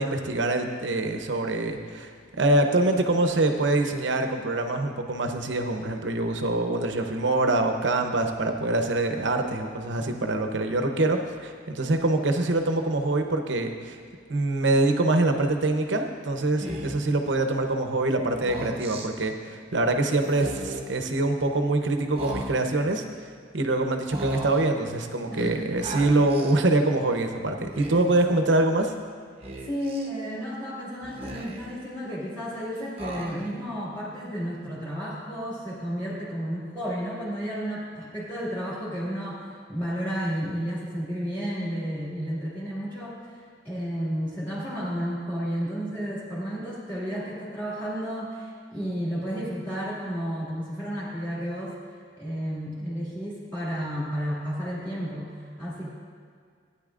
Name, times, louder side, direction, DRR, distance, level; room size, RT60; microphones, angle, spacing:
voice 1, 0.0-14.0 14.3-23.0 23.5-28.9, right 2 dB, 75° right, 5 dB, 0.8 m, -24 dB
Speech, 16.6-17.1 18.3-19.1 20.3-20.9 22.2-22.9 24.1-24.8 25.8-26.6 27.6-28.2 29.4-30.1 31.0-31.8 33.0-33.7, right 1 dB, 30° right, 0.9 m, -37 dB
voice 2, 29.6-51.8 52.2-55.9, equal, 10° left, -8 dB, 2.0 m, -32 dB
15.5 x 9.8 x 2.5 m, 2.1 s
head